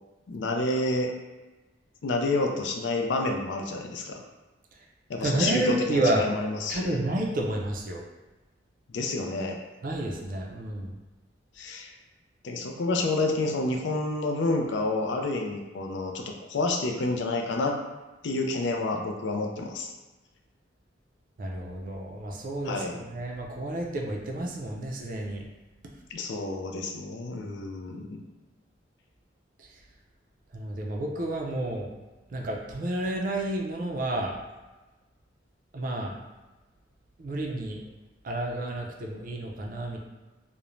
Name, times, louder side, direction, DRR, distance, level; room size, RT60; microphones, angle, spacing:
voice 1, 0.3-1.1 2.0-4.2 5.1-7.0 8.9-9.6 11.6-11.9 12.4-17.8 18.2-19.9 22.6-23.0 26.1-28.2, left 2 dB, 70° left, 2 dB, 0.4 m, -29 dB
voice 2, 5.2-6.4 6.7-8.0 9.8-10.9 21.4-25.5 29.6-29.7 30.5-31.9 32.3-34.4 35.7-36.2 37.2-37.8 38.2-40.0, right 1 dB, 50° right, 0 dB, 0.4 m, -30 dB
2.5 x 2.1 x 3.0 m, 1.2 s
head